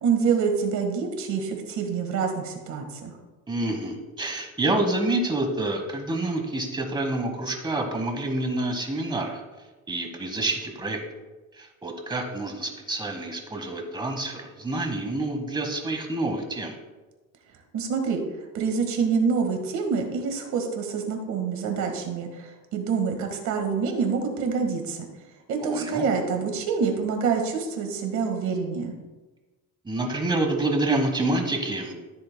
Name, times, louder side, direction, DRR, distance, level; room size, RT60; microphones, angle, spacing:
voice 1, 0.0-3.1 17.7-18.2 18.5-25.1 25.5-29.0, right 5 dB, 75° right, 4 dB, 1.7 m, -26 dB
voice 2, 3.5-9.4 9.9-11.0 11.5-16.8 25.6-26.0 29.8-31.9, right 2 dB, 15° right, 3 dB, 1.2 m, -28 dB
13.5 x 7.7 x 2.2 m, 1.2 s
cardioid pair, 175°, 29 cm